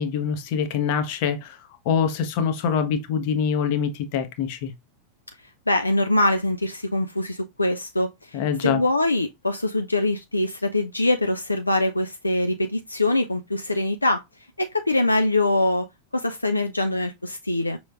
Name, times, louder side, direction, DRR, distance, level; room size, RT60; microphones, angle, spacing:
voice 1, 0.0-1.6 1.8-4.7 8.3-8.8, left 7 dB, 45° left, 0.8 m, -24 dB
voice 2, 5.7-14.2 14.6-15.9 16.1-17.8, left 2 dB, 85° left, 0.4 m, -23 dB
5.3 x 3.0 x 2.4 m
figure-of-eight pair, 90°, 0 cm